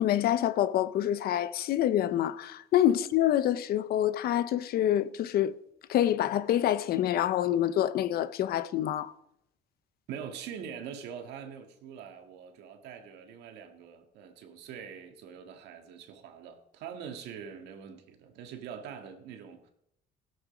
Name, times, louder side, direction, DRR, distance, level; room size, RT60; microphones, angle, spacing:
voice 1, 0.0-5.5 5.9-9.1, left 11 dB, 65° left, 0.8 m, -26 dB
voice 2, 10.1-19.7, right 7 dB, 85° right, 1.8 m, -44 dB
16.0 x 7.9 x 5.2 m
cardioid pair, 110°, 17 cm